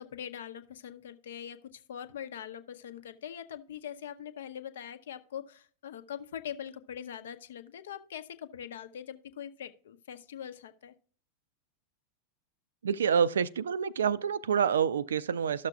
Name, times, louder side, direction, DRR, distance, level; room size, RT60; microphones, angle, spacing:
voice 1, 0.0-10.9, left 9 dB, 60° left, 0.7 m, -42 dB
voice 2, 12.8-15.7, right 7 dB, 65° right, 0.3 m, -27 dB
13.0 x 6.6 x 2.3 m
figure-of-eight pair, 90°, 0 cm